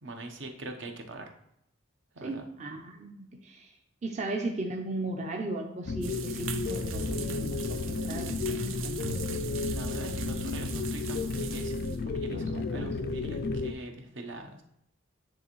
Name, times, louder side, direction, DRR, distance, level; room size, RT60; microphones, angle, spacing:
voice 1, 0.0-1.3 2.1-2.4 9.7-14.6, right 2 dB, 70° right, 4 dB, 0.8 m, -42 dB
voice 2, 2.2-3.7 4.0-9.2 12.3-13.1, right 2 dB, 35° right, 2 dB, 0.5 m, -37 dB
sound 1, 5.9-13.7, left 3 dB, 55° left, 0.3 m, -33 dB
sound 2, 6.0-12.0, right 6 dB, 90° right, 0.5 m, -40 dB
9.7 x 3.4 x 3.1 m, 0.76 s
head